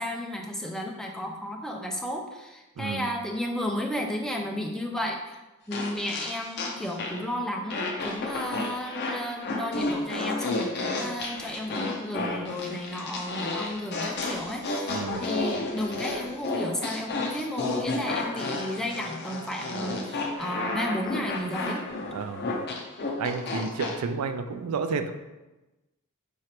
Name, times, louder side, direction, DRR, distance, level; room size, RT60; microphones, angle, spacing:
voice 1, 0.0-5.4 5.7-21.8, left 1 dB, 5° left, 1 dB, 0.3 m, -33 dB
voice 2, 2.8-3.1 14.9-15.2 22.1-22.5 23.2-25.1, right 5 dB, 90° right, 8 dB, 0.4 m, -31 dB
sound 1, 5.7-7.3 7.7-23.9, left 3 dB, 50° left, 0.6 m, -31 dB
4.8 x 3.1 x 2.9 m, 1.1 s
head